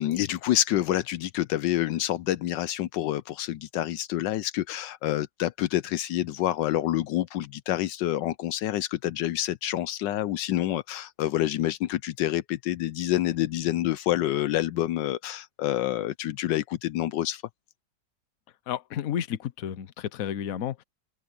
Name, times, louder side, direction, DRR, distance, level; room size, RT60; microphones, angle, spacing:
voice 1, 0.0-17.4, left 13 dB, 80° left, 1.3 m, -27 dB
voice 2, 18.7-20.8, left 9 dB, 55° left, 1.2 m, -31 dB
omnidirectional pair, 1.9 m